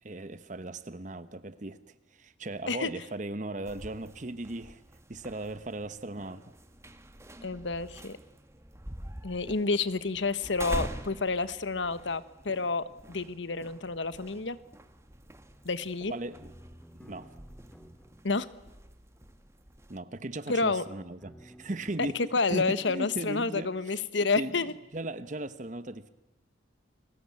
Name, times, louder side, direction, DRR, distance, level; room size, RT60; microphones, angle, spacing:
voice 1, 0.0-4.8 5.1-6.5 16.0-16.5 17.0-17.3 19.9-22.2 22.5-24.0 24.4-24.6 24.9-26.1, right 2 dB, 40° right, 1.0 m, -37 dB
sound 1, 3.6-20.0, right 1 dB, 15° right, 1.4 m, -45 dB
voice 2, 7.4-8.2 9.2-14.6 15.6-16.1 18.2-18.5 20.5-20.8 22.3-24.7, left 4 dB, 80° left, 1.2 m, -29 dB
sound 2, 16.3-18.7 21.2-22.1, equal, 5° left, 2.1 m, -53 dB
29.5 x 21.0 x 8.6 m
head